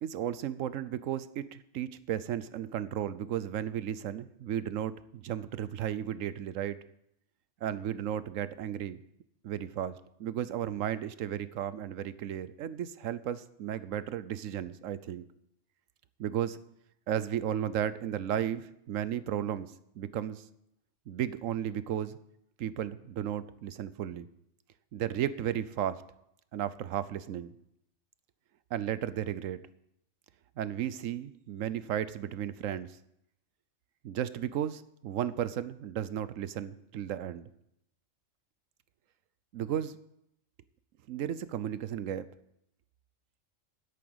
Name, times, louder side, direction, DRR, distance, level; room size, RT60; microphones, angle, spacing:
voice 1, 0.0-6.8 7.6-9.0 9.4-15.2 16.2-16.6 17.1-20.5 21.1-22.2 22.6-24.3 24.9-26.0 26.5-27.5 28.7-29.6 30.6-32.9 34.0-37.5 39.5-40.0 41.1-42.2, right 10 dB, 90° right, 15 dB, 1.1 m, -34 dB
10.0 x 8.7 x 7.9 m, 0.77 s
omnidirectional pair, 1.3 m